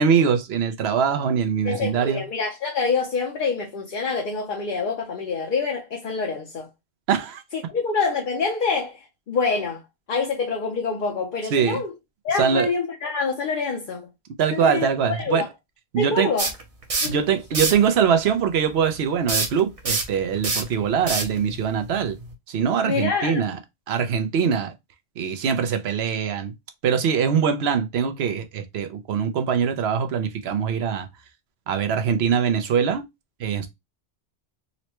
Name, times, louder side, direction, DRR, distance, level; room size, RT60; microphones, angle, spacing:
voice 1, 0.0-2.3 7.1-7.4 11.5-11.8 12.4-12.7 14.4-15.4 15.9-16.3 17.0-22.2 22.5-23.6 23.9-24.7 25.2-26.5 26.8-31.1 31.7-33.0 33.4-33.7, right 7 dB, 75° right, 0.9 m, -22 dB
voice 2, 1.6-6.7 7.5-9.8 10.1-11.9 12.2-14.1 14.5-15.5 16.0-16.5 17.0-17.2 22.8-23.4, left 4 dB, 55° left, 0.8 m, -26 dB
sound 1, 16.4-17.2 17.5-17.9 19.3-22.3, right 3 dB, 40° right, 0.7 m, -26 dB
4.0 x 2.1 x 2.9 m
omnidirectional pair, 1.1 m